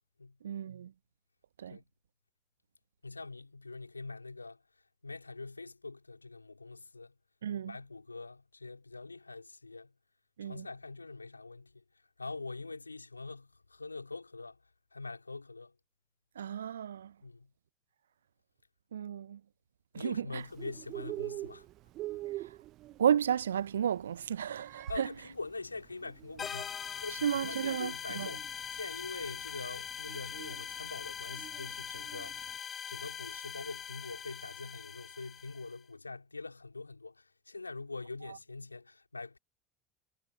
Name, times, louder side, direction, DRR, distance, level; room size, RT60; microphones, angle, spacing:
voice 1, 0.4-0.9 1.6-1.8 7.4-7.8 10.4-10.7 16.4-17.1 18.9-19.4 19.9-20.4 22.4-22.5 23.0-25.1 27.2-28.3 38.3-38.4, right 9 dB, 75° right, 0.9 m, -33 dB
voice 2, 3.0-7.2 7.6-9.9 10.4-11.8 12.2-14.6 14.9-15.7 17.2-17.5 19.9-21.7 22.1-22.2 24.9-32.6 32.9-39.4, left 3 dB, 85° left, 4.6 m, -44 dB
Bird, 20.4-32.5, right 16 dB, 50° right, 0.7 m, -46 dB
sound 1, 26.4-35.8, left 7 dB, 30° left, 1.1 m, -42 dB
figure-of-eight pair, 70°, 0 cm